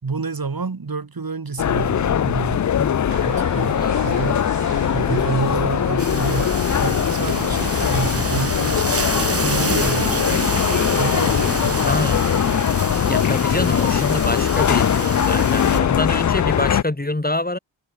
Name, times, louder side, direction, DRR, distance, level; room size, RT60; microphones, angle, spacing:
voice 1, 0.0-2.6 3.2-4.5 4.9-9.1 9.4-10.5 10.9-12.0, right 4 dB, 50° right, 4.5 m, -28 dB
sound 1, 1.6-16.8, left 9 dB, 40° left, 0.5 m, -21 dB
sound 2, 3.1-12.7, right 6 dB, 65° right, 3.4 m, -35 dB
sound 3, 6.0-15.8, right 3 dB, 30° right, 3.1 m, -28 dB
voice 2, 11.9-12.2 13.1-17.6, left 2 dB, 20° left, 3.3 m, -26 dB
cardioid pair, 50°, 46 cm